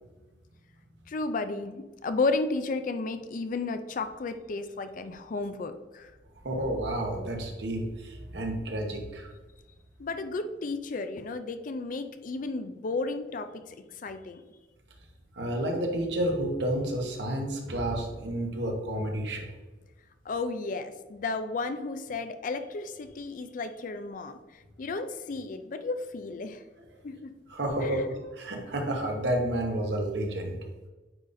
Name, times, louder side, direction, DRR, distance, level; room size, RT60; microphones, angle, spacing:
voice 1, 1.1-6.1 10.0-13.8 14.0-14.4 20.3-24.4 24.8-26.6 27.0-27.3 27.8-28.0, left 3 dB, 45° left, 10 dB, 0.4 m, -33 dB
voice 2, 6.4-9.3 15.4-19.5 27.5-28.0 28.4-30.6, right 1 dB, 70° right, 2 dB, 1.1 m, -30 dB
9.0 x 4.0 x 2.6 m, 1.2 s
head